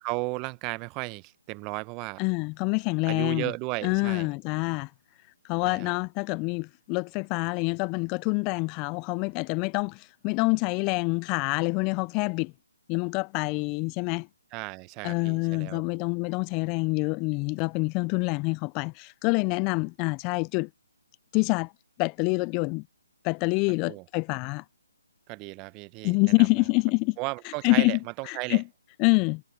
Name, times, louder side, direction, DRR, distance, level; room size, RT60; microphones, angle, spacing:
voice 1, 0.0-2.2 3.1-4.3 5.7-5.9 14.5-15.8 23.8-24.0 25.3-26.5 27.2-28.6, right 27 dB, 25° right, 1.1 m, -34 dB
voice 2, 2.2-3.5 3.8-4.9 5.5-12.5 12.9-14.3 15.0-20.7 21.3-21.7 22.0-22.8 23.2-24.6 26.0-27.2 27.4-28.0 28.3-28.6 29.0-29.4, left 31 dB, 25° left, 0.5 m, -26 dB
figure-of-eight pair, 140°, 0 cm